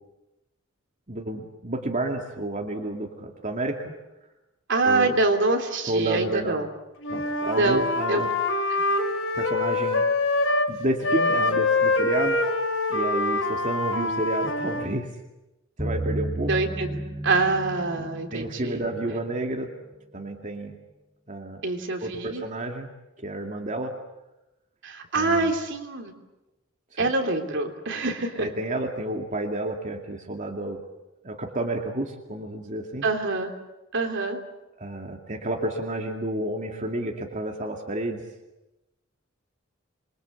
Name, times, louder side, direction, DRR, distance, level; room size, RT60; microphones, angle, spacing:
voice 1, 1.1-3.9 4.8-5.2 5.8-6.6 7.1-8.3 9.3-10.0 10.7-15.1 15.8-16.5 18.0-19.7 20.1-20.8 21.3-21.6 22.0-22.9 23.2-23.9 25.1-25.5 27.0-27.1 28.4-30.8 31.2-33.1 34.8-38.2, right 1 dB, 40° right, 2 dB, 2.4 m, -30 dB
voice 2, 4.7-6.7 7.5-8.2 8.7-8.8 16.5-16.9 17.2-18.8 21.6-22.4 24.8-26.1 27.0-28.5 33.0-33.5 33.9-34.4, right 3 dB, 65° right, 4 dB, 3.3 m, -25 dB
Wind instrument woodwind instrument, 7.0-10.7 11.0-14.9, left 2 dB, 75° left, 4.0 m, -25 dB
sound 1, 15.8-19.5, right 1 dB, 20° right, 4.5 m, -33 dB
27.5 x 23.0 x 8.2 m, 0.97 s
head